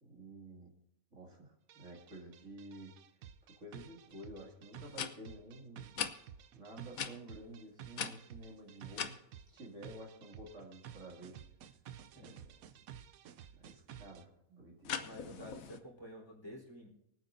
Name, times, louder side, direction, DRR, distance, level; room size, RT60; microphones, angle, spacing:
voice 1, 0.0-0.7 1.1-2.9 3.4-6.0 6.5-9.2 9.5-11.4 12.1-12.5 13.5-15.5, right 1 dB, 60° right, -1 dB, 2.7 m, -51 dB
sound 1, 1.7-14.3, right 10 dB, 80° right, 1.1 m, -53 dB
sound 2, 4.1-4.2 4.9-5.1 6.0-6.1 6.9-7.1 7.9-9.2 14.8-15.8, left 7 dB, 80° left, 1.3 m, -39 dB
voice 2, 15.0-16.9, equal, 15° left, -2 dB, 3.9 m, -50 dB
24.5 x 8.9 x 2.6 m, 0.82 s
omnidirectional pair, 1.5 m